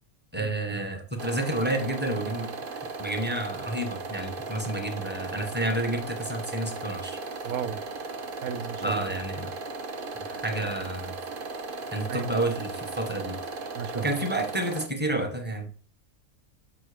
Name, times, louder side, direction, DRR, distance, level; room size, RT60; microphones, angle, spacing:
voice 1, 0.3-2.5 3.0-7.2 8.8-9.5 10.1-11.1 11.9-13.4 13.9-15.7, right 1 dB, 10° right, 3 dB, 1.1 m, -30 dB
sound 1, 1.2-14.9, right 3 dB, 45° right, 0.8 m, -37 dB
voice 2, 7.4-7.8 8.4-9.0 12.1-12.3 13.7-14.1, right 8 dB, 80° right, 11 dB, 1.2 m, -34 dB
6.9 x 6.1 x 5.0 m, 0.40 s
omnidirectional pair, 1.5 m